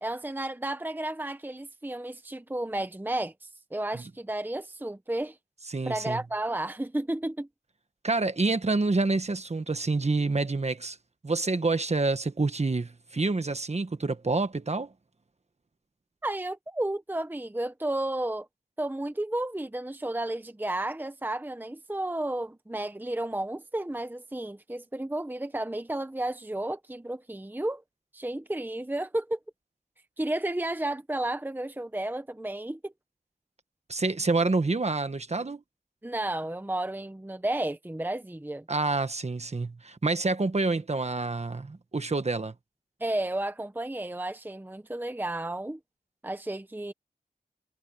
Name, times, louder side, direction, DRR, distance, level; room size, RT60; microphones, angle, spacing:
voice 1, 0.0-3.3 3.7-5.4 5.8-7.5 16.2-18.5 18.8-27.8 28.1-29.4 30.2-32.9 36.0-38.6 43.0-45.8 46.2-46.9, right 1 dB, 15° right, 0.8 m, -32 dB
voice 2, 5.7-6.2 8.0-11.0 11.2-14.9 33.9-35.6 38.7-42.5, right 3 dB, 45° right, 1.4 m, -27 dB
wide cardioid pair, 85°, 15 cm